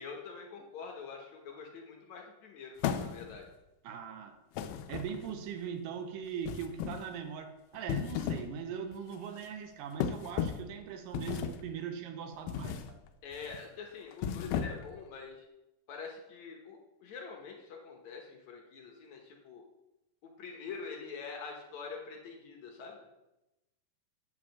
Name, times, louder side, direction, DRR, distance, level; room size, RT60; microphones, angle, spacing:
voice 1, 0.0-3.5 13.2-15.5 15.9-19.7 20.2-23.1, left 5 dB, 65° left, 1 dB, 2.2 m, -45 dB
sound 1, 2.8-3.5 4.6-5.5 6.4-7.1 7.7-8.6 8.9-9.2 10.0-10.7 11.1-11.7 12.5-12.9 13.3-13.6 14.1-15.0, left 8 dB, 80° left, 2.1 m, -35 dB
voice 2, 3.8-4.4 4.9-13.0, right 7 dB, 80° right, 7 dB, 2.4 m, -40 dB
8.5 x 5.0 x 7.0 m, 0.96 s
omnidirectional pair, 4.0 m